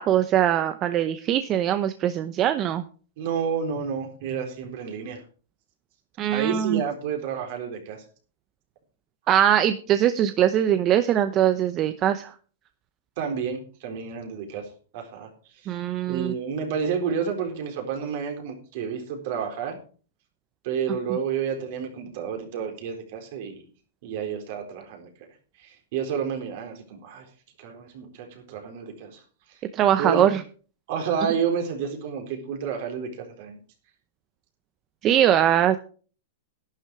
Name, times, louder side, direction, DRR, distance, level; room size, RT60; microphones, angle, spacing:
voice 1, 0.0-2.8 6.2-6.8 9.3-12.3 15.7-16.3 29.7-30.4 35.0-35.8, right 11 dB, 35° right, 11 dB, 0.8 m, -21 dB
voice 2, 3.2-5.2 6.3-8.0 13.2-14.7 14.9-15.3 15.6-15.7 16.1-19.8 20.6-23.6 24.0-25.1 25.6-27.3 27.6-29.2 29.5-29.6 30.0-30.3 30.9-33.6, right 6 dB, 55° right, 3 dB, 4.1 m, -30 dB
11.5 x 10.5 x 4.8 m, 0.41 s
hypercardioid pair, 125°, 0 cm